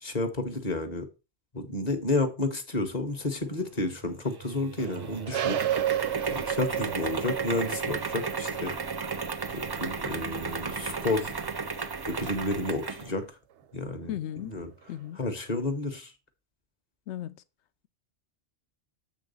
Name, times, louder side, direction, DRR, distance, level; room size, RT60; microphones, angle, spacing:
voice 1, 0.0-1.1 1.5-5.6 6.3-8.7 9.5-11.3 12.1-13.2 13.7-14.1 14.4-14.7 15.2-16.1, left 2 dB, 40° left, 1.1 m, -31 dB
sound 1, 4.3-13.1, right 4 dB, 35° right, 0.4 m, -34 dB
sound 2, 4.8-11.2 12.6-12.7, right 11 dB, 90° right, 1.0 m, -33 dB
voice 2, 14.1-14.5 14.9-15.2 17.1-17.4, left 12 dB, 85° left, 0.9 m, -35 dB
7.6 x 3.6 x 5.4 m
omnidirectional pair, 1.1 m